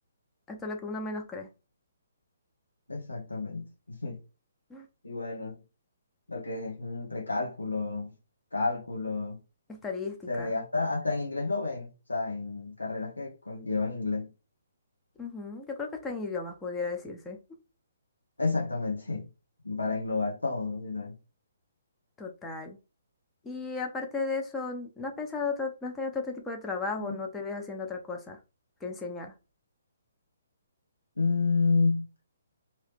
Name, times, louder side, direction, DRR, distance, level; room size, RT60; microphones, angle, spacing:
voice 1, 0.5-1.5 4.7-4.9 9.7-10.5 15.2-17.4 22.2-22.8 23.4-28.4 28.8-29.3, left 4 dB, 10° left, 0.6 m, -35 dB
voice 2, 2.9-3.7 4.0-4.2 5.0-5.6 6.3-8.1 8.5-9.4 10.3-14.3 18.4-19.3 19.6-21.2 27.0-27.2 31.2-32.0, left 3 dB, 85° left, 1.0 m, -30 dB
2.9 x 2.8 x 3.2 m
figure-of-eight pair, 135°, 0 cm